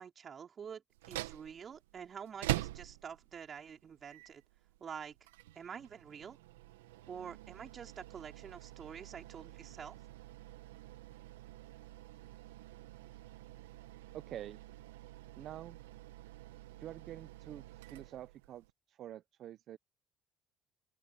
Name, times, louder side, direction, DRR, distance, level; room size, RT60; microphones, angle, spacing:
voice 1, 0.0-4.4 4.8-5.2 5.5-6.4 7.1-10.0, right 7 dB, 45° right, 5.3 m, -47 dB
sound 1, 0.9-18.7, right 16 dB, 90° right, 2.0 m, -46 dB
voice 2, 14.1-14.6 15.4-15.8 16.8-19.8, right 11 dB, 60° right, 1.0 m, -47 dB
open air
hypercardioid pair, 65°, 0 cm